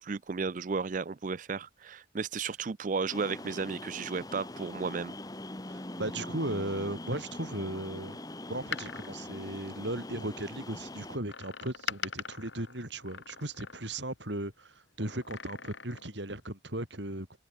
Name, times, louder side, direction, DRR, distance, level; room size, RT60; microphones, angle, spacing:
voice 1, 0.0-5.1, right 5 dB, 40° right, 0.4 m, -34 dB
sound 1, 3.1-11.2, left 1 dB, 20° left, 1.2 m, -42 dB
voice 2, 5.7-8.2 8.5-17.4, right 1 dB, 65° right, 5.0 m, -37 dB
Door, 8.5-10.3 11.3-14.1 15.1-16.2 16.5-16.6, left 6 dB, 75° left, 3.4 m, -42 dB
open air
head